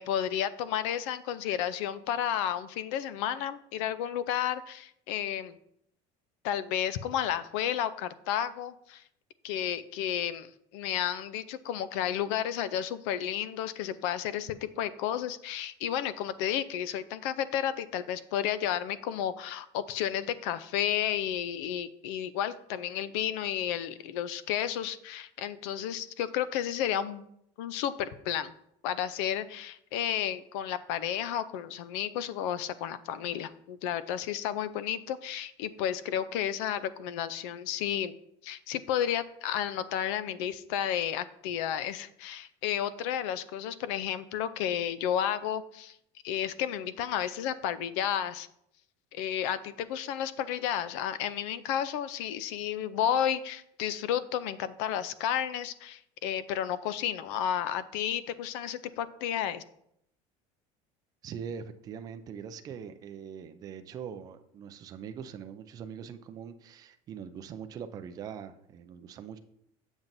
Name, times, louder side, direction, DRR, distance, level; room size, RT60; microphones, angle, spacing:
voice 1, 0.0-5.6 6.4-9.0 9.4-27.2 27.6-28.5 28.8-38.1 38.4-46.0 46.2-48.5 49.1-59.6, left 10 dB, 85° left, 15 dB, 0.5 m, -32 dB
voice 2, 61.2-69.4, right 7 dB, 25° right, 9 dB, 0.4 m, -42 dB
7.3 x 7.0 x 2.6 m, 0.74 s
cardioid pair, 175°, 15 cm